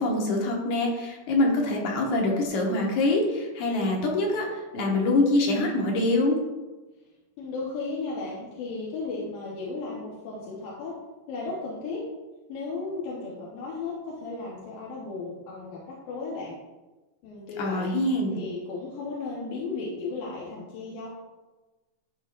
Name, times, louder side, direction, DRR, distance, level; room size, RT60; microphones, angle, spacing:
voice 1, 0.0-6.4 17.6-18.4, left 2 dB, 65° left, -1 dB, 2.3 m, -25 dB
voice 2, 7.4-10.9 11.3-12.0 12.5-16.6 17.2-17.9 18.3-21.1, left 3 dB, 90° left, -6 dB, 2.9 m, -35 dB
13.0 x 4.4 x 2.5 m, 1.2 s
omnidirectional pair, 3.9 m